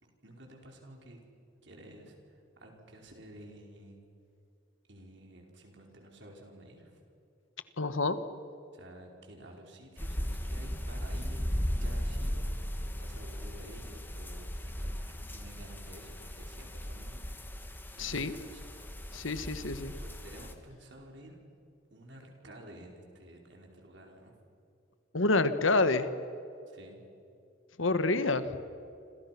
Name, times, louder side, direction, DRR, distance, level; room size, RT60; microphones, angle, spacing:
voice 1, 0.0-1.2 1.6-4.0 4.9-7.0 8.7-17.2 17.9-18.6 19.3-19.5 20.0-21.4 21.9-24.4 26.7-27.1, right 1 dB, 60° right, 1 dB, 5.0 m, -51 dB
voice 2, 7.8-8.2 18.0-18.3 19.1-19.9 25.1-26.1 27.8-28.4, left 3 dB, 80° left, 11 dB, 1.5 m, -28 dB
sound 1, 10.0-20.5, equal, 10° left, 1.7 m, -37 dB
30.0 x 26.5 x 6.0 m, 2.6 s
head